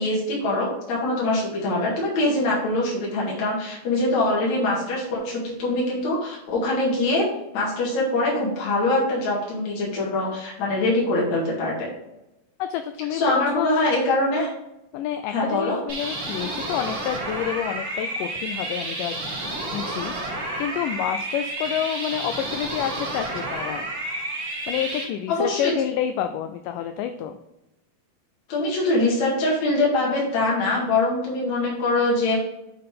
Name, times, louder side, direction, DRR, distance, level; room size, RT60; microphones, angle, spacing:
voice 1, 0.0-7.3 7.5-11.9 13.1-14.5 15.3-15.8 25.3-25.7 28.5-32.4, left 2 dB, 55° left, -5 dB, 2.9 m, -23 dB
voice 2, 12.6-13.8 14.9-19.2 19.5-23.9 24.7-27.4, left 10 dB, 85° left, 8 dB, 1.9 m, -29 dB
sound 1, 15.9-25.0, right 2 dB, 40° right, 2.6 m, -30 dB
7.6 x 5.7 x 3.7 m, 0.90 s
omnidirectional pair, 4.3 m